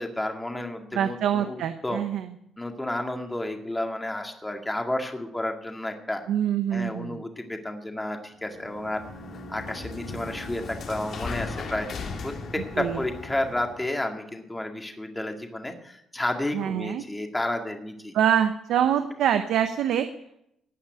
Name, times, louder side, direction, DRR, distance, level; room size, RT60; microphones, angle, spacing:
voice 1, 0.0-2.0 2.6-6.2 6.7-9.0 9.5-18.1, left 1 dB, 10° left, 4 dB, 2.1 m, -31 dB
voice 2, 0.9-2.3 6.3-7.2 12.8-13.0 16.5-17.0 18.1-20.1, right 9 dB, 80° right, 8 dB, 0.8 m, -25 dB
sound 1, 8.4-13.9, left 3 dB, 65° left, 2.3 m, -37 dB
16.5 x 5.6 x 9.2 m, 0.77 s
cardioid pair, 90°, 0 cm